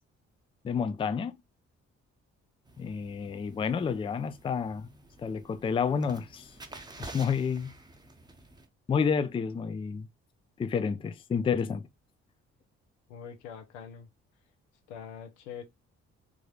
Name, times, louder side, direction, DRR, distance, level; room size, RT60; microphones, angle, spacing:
voice 1, 0.6-1.4 2.8-4.9 5.2-6.5 7.0-7.7 8.9-10.1 10.6-11.9, left 6 dB, 15° left, 0.4 m, -30 dB
sound 1, 2.7-8.7, right 2 dB, 10° right, 0.7 m, -50 dB
voice 2, 13.1-14.1 14.9-15.6, left 7 dB, 80° left, 0.7 m, -43 dB
3.6 x 2.5 x 3.1 m
figure-of-eight pair, 40°, 35 cm